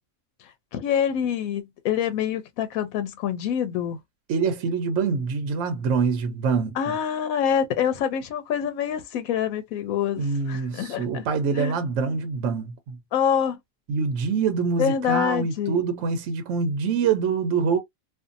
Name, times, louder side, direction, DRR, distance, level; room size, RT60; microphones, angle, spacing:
voice 1, 0.7-4.0 6.8-11.2 11.5-11.7 13.1-13.6 14.8-15.8, left 8 dB, 90° left, 1.0 m, -26 dB
voice 2, 4.3-7.0 10.2-13.0 13.9-17.8, right 5 dB, 70° right, 0.9 m, -25 dB
2.6 x 2.4 x 2.5 m
omnidirectional pair, 1.4 m